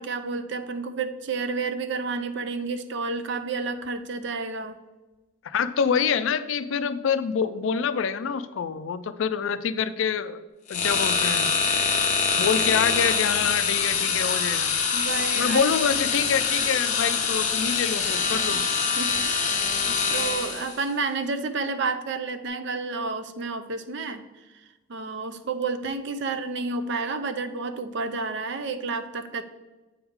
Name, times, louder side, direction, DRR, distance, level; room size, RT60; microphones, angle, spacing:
voice 1, 0.0-4.8 14.9-15.7 19.0-24.2 24.9-29.4, right 4 dB, 55° right, 10 dB, 0.5 m, -30 dB
voice 2, 5.4-10.4 10.7-11.5 12.4-14.7 15.3-18.6, left 6 dB, 65° left, 13 dB, 0.4 m, -26 dB
sound 1, 10.7-20.8, left 5 dB, 35° left, 0.8 m, -24 dB
7.8 x 4.7 x 3.6 m, 1.1 s
head